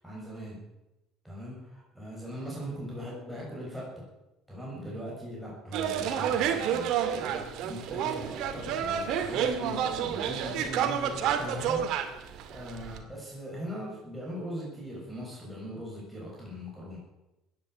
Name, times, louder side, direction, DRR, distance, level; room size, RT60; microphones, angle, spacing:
voice 1, 0.0-0.7 1.2-4.1 4.5-17.0, equal, ahead, -5 dB, 7.0 m, -40 dB
sound 1, 5.7-13.0, right 8 dB, 65° right, 2.2 m, -30 dB
16.0 x 10.5 x 7.9 m, 0.94 s
cardioid pair, 120°, 0 cm